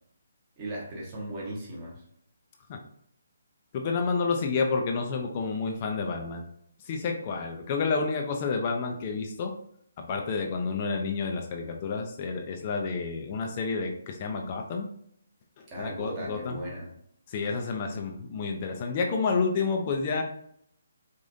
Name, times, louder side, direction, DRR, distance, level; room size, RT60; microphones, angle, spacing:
voice 1, 0.6-2.0 15.7-16.9, right 1 dB, 25° right, -4 dB, 1.2 m, -37 dB
voice 2, 3.7-6.5 6.8-9.5 10.0-14.9 15.6-16.6 17.3-20.2, left 4 dB, 35° left, 2 dB, 0.5 m, -30 dB
4.9 x 2.6 x 2.6 m, 0.69 s
hypercardioid pair, 160°, 0 cm